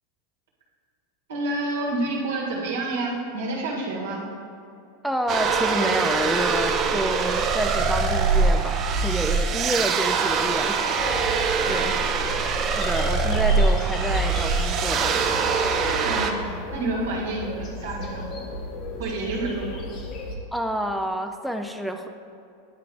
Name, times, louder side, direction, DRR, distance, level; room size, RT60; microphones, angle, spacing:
voice 1, 1.3-4.2 11.6-12.1 16.0-18.5 19.0-19.8, right 2 dB, 85° right, -3 dB, 1.7 m, -29 dB
voice 2, 5.0-11.3 11.7-11.9 12.8-15.6 20.5-22.1, equal, ahead, 5 dB, 0.4 m, -28 dB
sound 1, 5.3-16.3, right 5 dB, 40° right, 0.6 m, -23 dB
sound 2, 11.0-20.3, left 1 dB, 45° left, 1.1 m, -35 dB
9.6 x 4.6 x 3.6 m, 2.6 s
hypercardioid pair, 110°, 0 cm